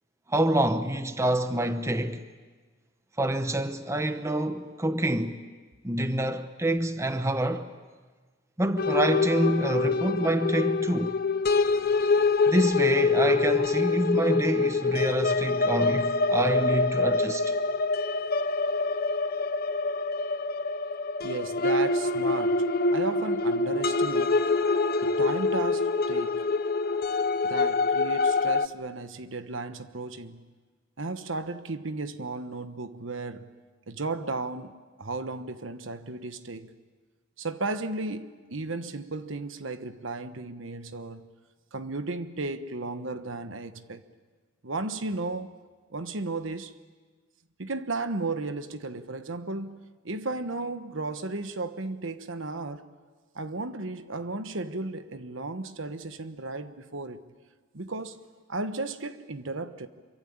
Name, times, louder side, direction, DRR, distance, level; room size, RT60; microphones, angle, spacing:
voice 1, 0.3-2.2 3.2-5.4 5.8-7.7 8.6-11.2 12.5-17.5, right 1 dB, 15° right, 0.9 m, -27 dB
sound 1, 8.8-28.7, left 3 dB, 45° left, 0.7 m, -25 dB
voice 2, 21.2-24.4 25.0-26.5 27.4-30.5 31.0-33.5 33.9-34.7 35.0-36.7 37.4-41.3 41.7-44.0 44.6-45.5 45.9-46.8 47.6-52.8 53.3-57.2 57.7-58.2 58.5-59.9, right 3 dB, 70° right, 1.2 m, -34 dB
26.5 x 24.0 x 8.6 m
head